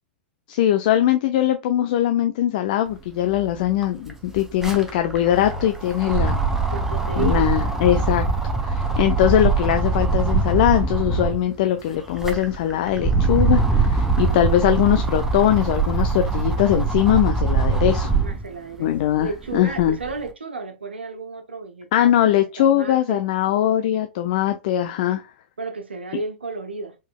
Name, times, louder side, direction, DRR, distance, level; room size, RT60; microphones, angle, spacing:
voice 1, 0.5-6.4 7.2-8.3 8.6-18.1 18.8-20.0 21.9-25.2, left 12 dB, 50° left, 0.4 m, -21 dB
sound 1, 3.3-3.4 3.7-11.5 12.0-18.5 19.0-20.1, right 4 dB, 5° right, 0.6 m, -22 dB
voice 2, 6.7-7.5 18.2-23.3 25.6-27.0, right 3 dB, 75° right, 0.6 m, -33 dB
4.2 x 3.1 x 2.2 m
figure-of-eight pair, 100°, 6 cm